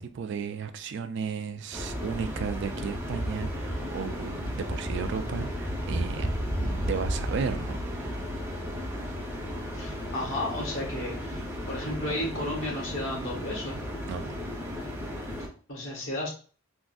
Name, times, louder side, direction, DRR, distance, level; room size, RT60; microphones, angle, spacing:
voice 1, 0.1-6.3 6.6-8.3 14.1-14.3, right 6 dB, 55° right, 0.3 m, -34 dB
sound 1, 1.7-15.5, equal, 10° right, 0.6 m, -33 dB
voice 2, 9.7-13.8 15.7-16.3, left 1 dB, 60° left, 1.4 m, -33 dB
3.6 x 2.5 x 2.3 m
head